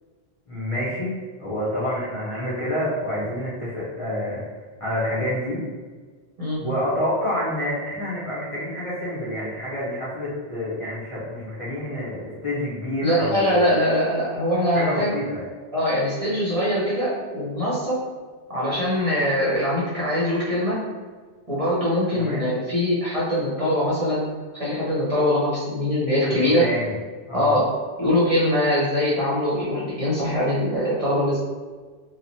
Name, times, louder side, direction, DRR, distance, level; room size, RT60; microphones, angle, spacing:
voice 1, 0.5-1.1 1.4-4.4 4.8-5.6 6.6-13.6 14.7-15.4 22.1-22.5 26.2-26.9 27.3-27.5, left 1 dB, 35° left, -10 dB, 0.6 m, -28 dB
voice 2, 13.0-15.1 15.7-18.0 18.5-20.8 21.5-24.3 24.5-26.7 27.3-27.6 28.0-31.4, left 1 dB, 40° right, -8 dB, 0.6 m, -22 dB
2.9 x 2.0 x 2.6 m, 1.4 s
omnidirectional pair, 1.1 m